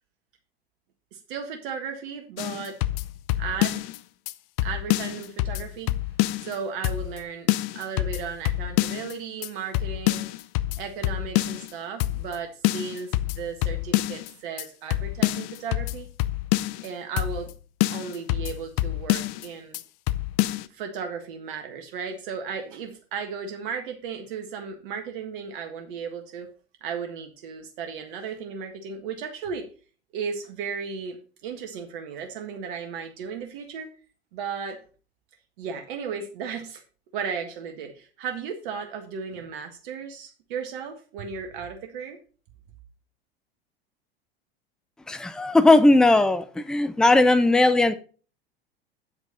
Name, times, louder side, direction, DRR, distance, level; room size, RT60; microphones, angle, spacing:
voice 1, 1.1-2.8 3.4-3.9 4.6-5.9 6.4-7.5 7.7-10.3 10.7-16.1 16.8-17.5 17.9-19.8 20.7-26.5 26.8-29.7 30.1-33.9 34.3-34.8 35.6-36.8 37.1-42.2, right 6 dB, 55° right, 4 dB, 1.7 m, -35 dB
sound 1, 2.4-4.0 4.3-4.4 4.6-6.5 6.8-7.2 7.5-9.1 9.4-9.5 9.7-11.7 12.0-12.4 12.6-14.3 14.6-14.7 14.9-16.9 17.2-17.5 17.8-19.5 19.7-19.8 20.1-20.6, left 16 dB, 45° left, 0.7 m, -26 dB
voice 2, 45.1-47.9, left 2 dB, ahead, 13 dB, 0.7 m, -18 dB
8.6 x 8.0 x 4.0 m, 0.37 s
figure-of-eight pair, 80°, 30 cm